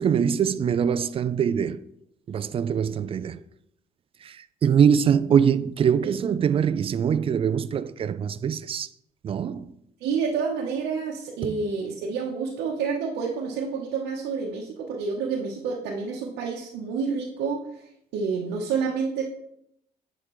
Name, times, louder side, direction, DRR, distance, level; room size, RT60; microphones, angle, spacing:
voice 1, 0.0-1.8 2.3-3.4 4.2-8.9 9.2-9.7 11.5-11.6, right 8 dB, 35° right, 0.4 m, -23 dB
voice 2, 10.0-19.2, right 5 dB, 85° right, 1.0 m, -29 dB
8.7 x 5.0 x 3.1 m
cardioid pair, 110°, 17 cm